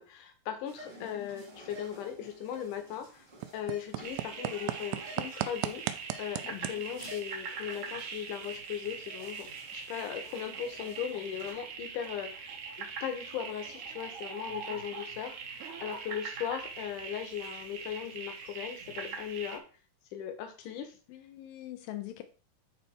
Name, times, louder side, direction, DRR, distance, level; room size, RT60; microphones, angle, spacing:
voice 1, 0.0-3.2 3.5-19.6 20.1-20.9, left 9 dB, 65° left, 6 dB, 2.3 m, -38 dB
sound 1, 0.7-11.5, right 1 dB, 35° right, 0.8 m, -52 dB
voice 2, 1.0-1.5 6.5-7.1 14.5-14.8 21.1-22.2, left 14 dB, 85° left, 7 dB, 2.0 m, -44 dB
sound 2, 1.5-19.6, right 14 dB, 85° right, 2.7 m, -44 dB
sound 3, 4.0-19.6, right 5 dB, 60° right, 2.3 m, -42 dB
9.8 x 4.4 x 4.4 m, 0.37 s
omnidirectional pair, 4.9 m